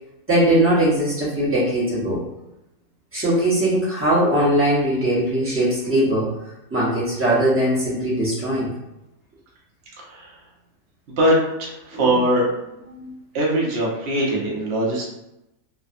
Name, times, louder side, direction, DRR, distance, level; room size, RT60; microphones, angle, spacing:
voice 1, 0.3-2.2 3.1-6.3 6.7-8.7 11.9-12.2 12.9-13.1, right 1 dB, 10° right, -8 dB, 0.7 m, -20 dB
voice 2, 10.0-10.3 11.2-12.4 13.3-15.1, right 1 dB, 55° right, -4 dB, 0.8 m, -21 dB
3.2 x 2.1 x 2.5 m, 0.90 s
omnidirectional pair, 1.6 m